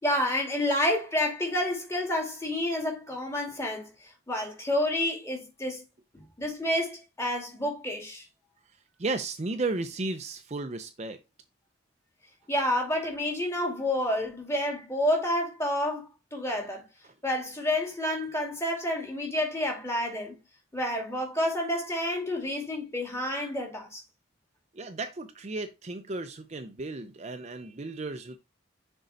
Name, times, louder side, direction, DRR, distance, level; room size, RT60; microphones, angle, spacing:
voice 1, 0.0-5.8 6.1-8.3 12.5-16.8 17.2-20.4 20.7-24.0, left 1 dB, 15° left, 2.2 m, -29 dB
voice 2, 9.0-11.2 24.7-28.4, right 3 dB, 35° right, 0.6 m, -34 dB
6.6 x 4.6 x 3.9 m
head